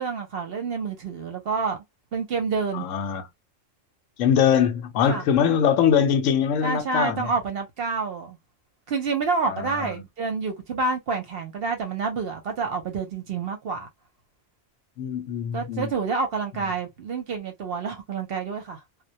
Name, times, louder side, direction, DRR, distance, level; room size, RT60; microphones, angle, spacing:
voice 1, 0.0-1.8 2.1-2.9 5.1-5.2 6.6-8.4 8.9-13.9 15.5-18.8, right 4 dB, 60° right, 0.7 m, -28 dB
voice 2, 2.7-3.2 4.2-7.3 9.5-9.9 15.0-15.9, left 8 dB, 85° left, 1.0 m, -22 dB
2.1 x 2.1 x 2.7 m
omnidirectional pair, 1.3 m